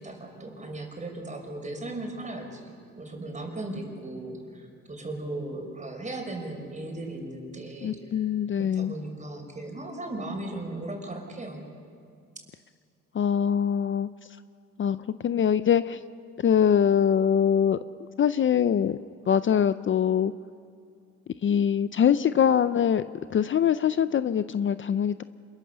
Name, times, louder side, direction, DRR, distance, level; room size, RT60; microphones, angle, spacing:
voice 1, 0.0-8.2 8.5-11.6, right 2 dB, 25° right, 3 dB, 5.3 m, -37 dB
voice 2, 7.8-8.9 13.1-14.1 14.8-16.0 16.4-17.8 18.2-19.0 19.3-20.3 21.4-23.0 23.3-25.2, left 8 dB, 40° left, 13 dB, 0.5 m, -23 dB
27.0 x 22.0 x 6.9 m, 2.3 s
cardioid pair, 90°, 30 cm